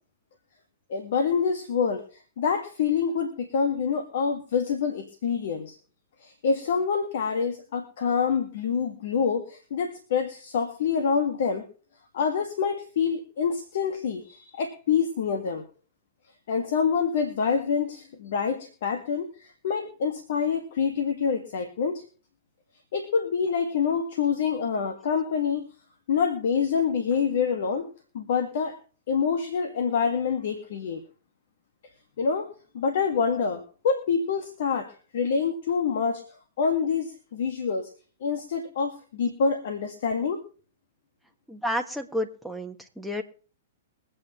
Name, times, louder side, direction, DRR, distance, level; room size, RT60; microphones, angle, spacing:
voice 1, 0.9-5.8 6.2-11.7 12.1-15.6 16.5-22.0 22.9-25.7 26.1-27.9 28.1-28.7 29.1-31.0 32.2-36.2 36.6-37.9 38.2-40.4, left 6 dB, 65° left, 5 dB, 1.7 m, -26 dB
voice 2, 41.5-43.2, left 1 dB, ahead, 3 dB, 1.5 m, -31 dB
23.0 x 8.6 x 3.1 m, 0.39 s
hypercardioid pair, 115°, 0 cm